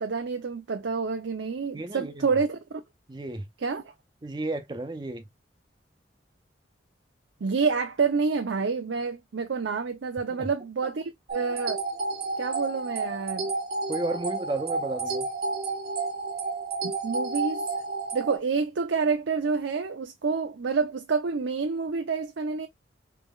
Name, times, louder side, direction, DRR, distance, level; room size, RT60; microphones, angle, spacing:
voice 1, 0.0-2.8 3.6-3.8 7.4-11.0 11.3-11.8 12.4-13.5 16.8-17.6 18.1-22.7, right 5 dB, 85° right, 0.5 m, -28 dB
voice 2, 1.7-2.3 3.1-3.4 4.2-5.2 10.4-10.5 13.9-15.3, right 2 dB, 25° right, 0.4 m, -32 dB
sound 1, 11.3-18.4, right 3 dB, 55° right, 0.9 m, -31 dB
4.1 x 3.4 x 2.2 m
head